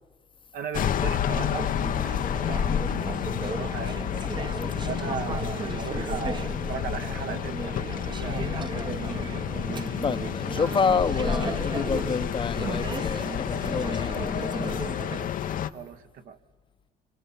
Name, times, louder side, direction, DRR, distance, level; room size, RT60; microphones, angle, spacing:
voice 1, 0.5-2.7 3.5-4.1 4.9-9.1 9.5-9.9 15.6-16.4, right 7 dB, 60° right, 1.6 m, -38 dB
sound 1, 0.7-15.7, left 9 dB, 55° left, 0.9 m, -30 dB
Conversation / Chatter, 1.3-15.3, right 4 dB, 25° right, 1.1 m, -36 dB
voice 2, 10.0-14.7, left 5 dB, 30° left, 1.0 m, -28 dB
27.0 x 26.0 x 7.2 m
cardioid pair, 110°, 17 cm